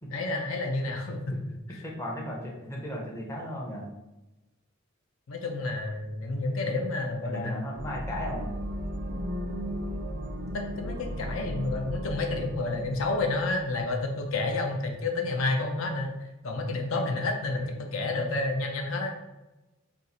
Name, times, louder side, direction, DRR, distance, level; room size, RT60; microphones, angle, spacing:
voice 1, 0.1-1.2 1.7-1.8 5.3-7.6 10.5-16.2 16.4-19.1, left 2 dB, 75° left, 3 dB, 0.5 m, -30 dB
voice 2, 1.8-3.9 7.2-8.5 16.9-17.0 17.6-17.7, equal, 15° left, -2 dB, 0.5 m, -36 dB
sound 1, 7.8-14.4, equal, 65° right, 0.5 m, -36 dB
2.6 x 2.4 x 3.9 m, 1.0 s
head